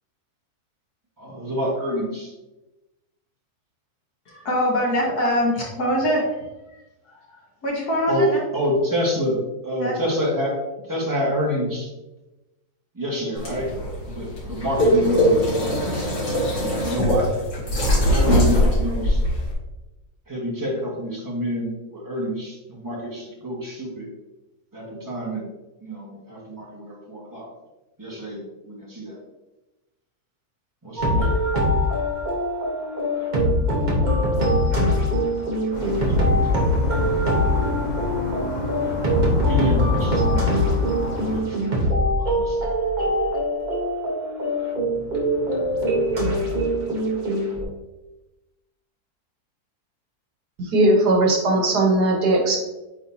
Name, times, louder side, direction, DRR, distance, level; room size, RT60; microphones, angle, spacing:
voice 1, 1.2-2.3 8.1-8.2 8.5-9.4 9.6-10.5 10.9-11.9 12.9-13.7 14.1-16.1 16.5-17.3 18.0-19.2 20.3-24.1 24.7-25.4 25.8-27.5 28.0-29.2 30.8-31.3 35.9-36.5 39.5-41.6 42.1-42.6, equal, 10° right, -4 dB, 1.6 m, -28 dB
voice 2, 4.3-6.2 6.7-6.8 7.3-7.4 7.6-8.4 9.8-10.0, equal, 75° left, -4 dB, 2.2 m, -23 dB
sound 1, 13.3-19.5, equal, 50° left, 2.1 m, -21 dB
sound 2, 31.0-47.6, equal, 30° right, 1.1 m, -22 dB
sound 3, 35.7-41.4, left 1 dB, 30° left, 1.2 m, -29 dB
voice 3, 50.7-52.6, right 2 dB, 80° right, 0 dB, 1.9 m, -18 dB
8.4 x 4.0 x 2.8 m, 1.0 s
omnidirectional pair, 1.7 m